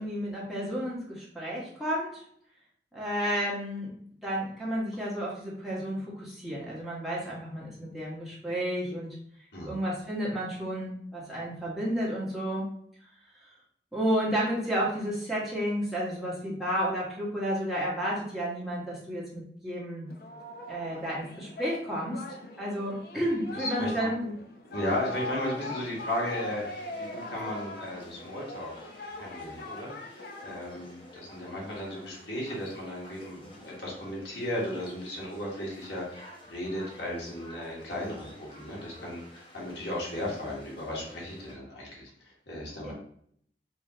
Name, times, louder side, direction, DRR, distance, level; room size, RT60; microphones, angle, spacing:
voice 1, 0.0-2.2 2.9-3.9 4.2-9.2 9.7-12.7 13.9-20.1 20.7-22.2 22.6-24.3 42.8-42.9, equal, ahead, -8 dB, 1.2 m, -31 dB
Singing, 20.1-31.1, left 1 dB, 60° left, 0.6 m, -41 dB
voice 2, 23.5-24.1 24.7-28.7 29.1-42.9, left 1 dB, 80° left, -4 dB, 1.5 m, -35 dB
Conversation / Crowd, 24.9-41.5, left 1 dB, 30° left, 0.8 m, -50 dB
4.9 x 2.7 x 2.8 m, 0.65 s
head